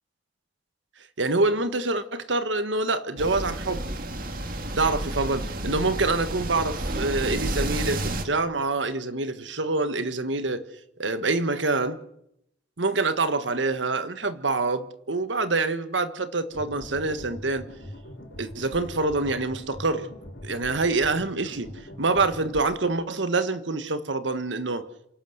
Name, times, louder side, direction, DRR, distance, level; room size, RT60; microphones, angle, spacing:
voice 1, 1.2-3.8 4.8-10.6 11.0-12.0 12.8-17.7 18.4-20.1 20.4-21.7 22.0-24.9, right 3 dB, 85° right, 1.5 m, -26 dB
sound 1, 3.2-8.2, right 1 dB, 50° right, 2.2 m, -31 dB
sound 2, 16.5-22.6, equal, 65° left, 4.5 m, -42 dB
27.0 x 12.5 x 8.0 m
head